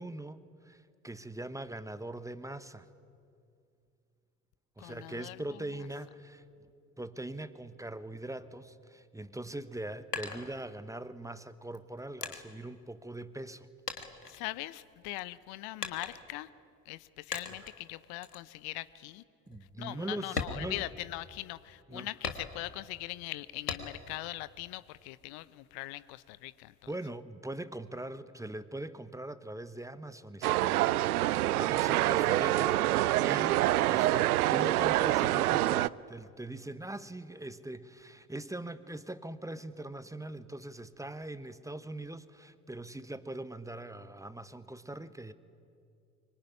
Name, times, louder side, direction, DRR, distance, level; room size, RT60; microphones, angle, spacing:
voice 1, 0.0-2.9 4.8-6.4 7.0-13.7 17.5-17.7 19.5-20.9 21.9-22.1 26.9-31.0 31.6-45.3, right 1 dB, 5° right, 14 dB, 1.1 m, -41 dB
voice 2, 4.8-5.4 14.3-16.5 16.9-19.2 19.8-26.7, left 18 dB, 55° left, 17 dB, 0.8 m, -41 dB
sound 1, 9.6-11.1 11.7-13.6 13.9-15.0 15.8-16.5 17.3-17.8 18.2-18.5 18.9-19.0 19.5-19.6 20.2-21.4 22.2-22.9 23.7-24.2 24.6-25.5, left 4 dB, 90° left, 1.6 m, -40 dB
sound 2, 30.4-35.9, right 16 dB, 75° right, 0.6 m, -26 dB
24.5 x 23.5 x 9.8 m, 2.4 s
figure-of-eight pair, 60°, 46 cm